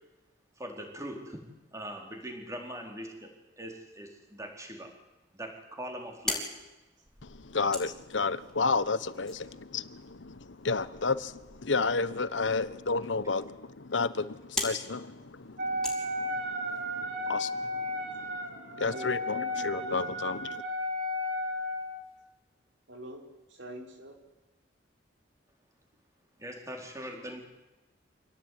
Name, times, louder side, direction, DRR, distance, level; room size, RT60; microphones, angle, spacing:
voice 1, 0.6-1.4 1.7-4.9 5.3-6.5 26.4-27.4, equal, 15° right, 4.2 m, -41 dB
sound 1, 5.9-16.8, left 2 dB, 5° left, 4.8 m, -42 dB
voice 2, 7.2-20.6, left 4 dB, 90° left, 1.1 m, -32 dB
Wind instrument woodwind instrument, 15.6-22.0, left 1 dB, 55° right, 4.3 m, -34 dB
voice 3, 18.9-19.2 19.7-20.0 22.9-24.2, equal, 80° right, 5.0 m, -44 dB
26.0 x 18.0 x 9.6 m
head